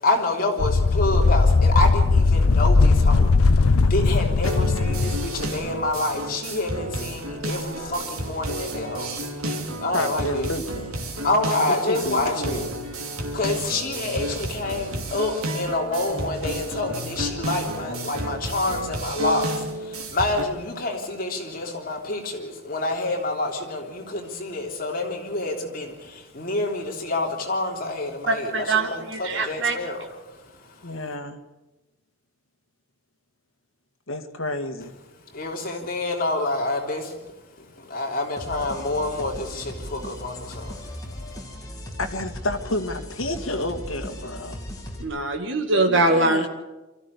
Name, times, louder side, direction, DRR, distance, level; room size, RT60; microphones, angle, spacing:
voice 1, 0.0-9.3 9.8-10.5 11.2-12.7 13.3-30.8 35.3-37.2 37.6-40.7 41.0-41.4, left 2 dB, 40° left, 1 dB, 3.4 m, -28 dB
sound 1, 0.6-5.5, left 3 dB, 90° left, 0.7 m, -18 dB
sound 2, 4.4-20.4, right 1 dB, 90° right, 2.8 m, -31 dB
voice 2, 9.9-11.0 11.9-12.6 30.8-31.4 34.1-34.9 42.0-44.6 45.9-46.5, left 1 dB, 75° left, 6 dB, 1.9 m, -30 dB
voice 3, 28.3-29.8 45.0-46.5, right 2 dB, 60° right, 4 dB, 2.2 m, -22 dB
sound 3, 38.4-45.0, equal, 15° left, 2.9 m, -37 dB
24.5 x 14.5 x 8.3 m, 1.1 s
head